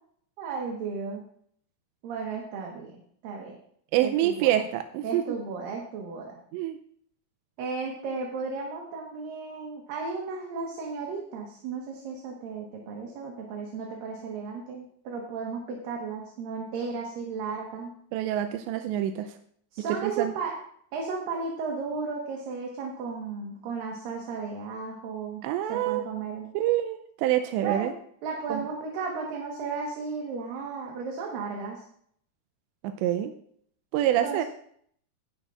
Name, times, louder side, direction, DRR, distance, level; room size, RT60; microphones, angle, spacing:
voice 1, 0.4-1.2 2.0-3.6 4.0-4.5 5.0-6.4 7.6-17.9 19.7-20.6 20.9-25.4 25.7-26.5 27.6-27.9 28.2-31.8 34.1-34.4, right 4 dB, 65° right, -1 dB, 2.7 m, -34 dB
voice 2, 3.9-5.4 6.5-6.8 18.1-19.4 20.0-20.3 25.4-26.1 26.5-27.9 28.5-28.7 32.8-33.3 33.9-34.4, right 12 dB, 90° right, 8 dB, 2.9 m, -26 dB
15.5 x 11.0 x 2.5 m, 0.63 s
omnidirectional pair, 5.1 m